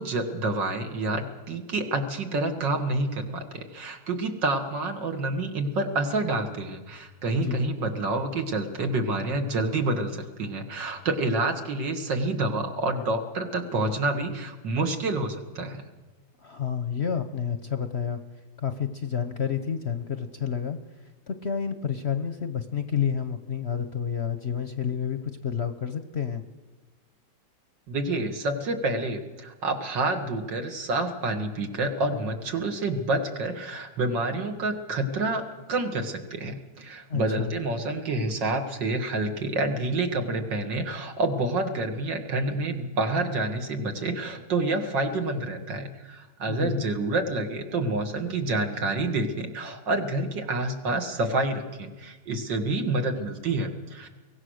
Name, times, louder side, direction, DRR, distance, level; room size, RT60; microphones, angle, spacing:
voice 1, 0.0-15.8 27.9-54.1, right 2 dB, 75° right, 4 dB, 2.5 m, -28 dB
voice 2, 7.3-7.7 16.4-18.2 18.6-20.8 21.3-26.4 37.1-37.5 46.5-46.8, left 7 dB, 50° left, 8 dB, 0.9 m, -29 dB
23.0 x 17.5 x 6.5 m, 1.2 s
omnidirectional pair, 1.9 m